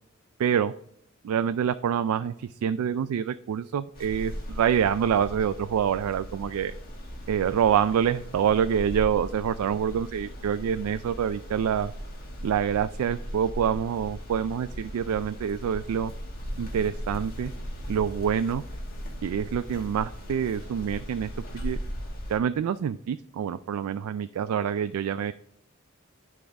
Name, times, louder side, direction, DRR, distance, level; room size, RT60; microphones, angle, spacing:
voice 1, 0.4-0.7 1.2-6.7 7.3-11.9 12.4-16.1 16.6-17.5 17.9-18.6 19.2-21.8 22.3-25.3, right 8 dB, 80° right, 12 dB, 0.3 m, -26 dB
sound 1, 3.9-22.4, equal, 45° left, 1.6 m, -38 dB
10.0 x 3.7 x 3.4 m, 0.73 s
head